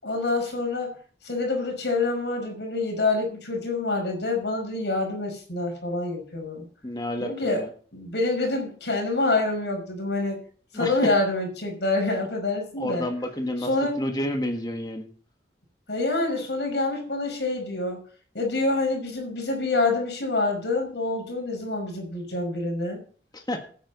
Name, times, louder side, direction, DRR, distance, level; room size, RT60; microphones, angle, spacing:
voice 1, 0.0-0.9 1.2-6.7 7.2-7.6 7.9-10.4 10.7-13.1 13.6-14.0 15.9-18.0 18.3-23.0, left 2 dB, 75° left, 2 dB, 5.5 m, -26 dB
voice 2, 6.8-7.7 10.7-11.0 12.8-13.7 14.0-15.1 23.3-23.6, left 1 dB, 25° left, 4 dB, 1.5 m, -30 dB
16.0 x 9.5 x 4.1 m, 0.43 s
head